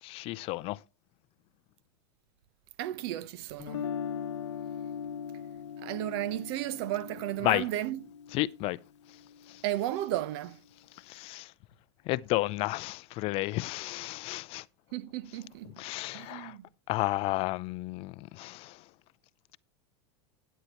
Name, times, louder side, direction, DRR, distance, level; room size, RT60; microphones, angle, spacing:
voice 1, 0.0-0.8 7.4-7.7 8.3-8.8 9.5-9.6 11.1-11.5 12.1-14.6 15.8-16.5 16.9-18.8, left 20 dB, 40° left, 0.5 m, -32 dB
voice 2, 2.8-3.8 5.8-8.1 9.6-10.6 14.9-15.7 16.1-16.6, right 13 dB, 60° right, 0.8 m, -34 dB
Guitar, 3.6-9.6, left 7 dB, 90° left, 0.9 m, -40 dB
13.0 x 10.0 x 3.0 m
supercardioid pair, 130°, 15 cm